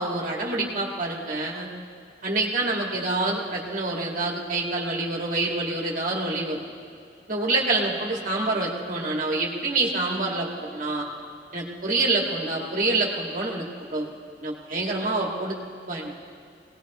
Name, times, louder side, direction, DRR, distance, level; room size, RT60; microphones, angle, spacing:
voice 1, 0.0-1.7 2.2-6.6 7.3-11.1 11.5-14.1 14.4-15.6 15.9-16.1, right 2 dB, 50° right, -2 dB, 2.1 m, -27 dB
23.5 x 18.5 x 3.1 m, 2.3 s
head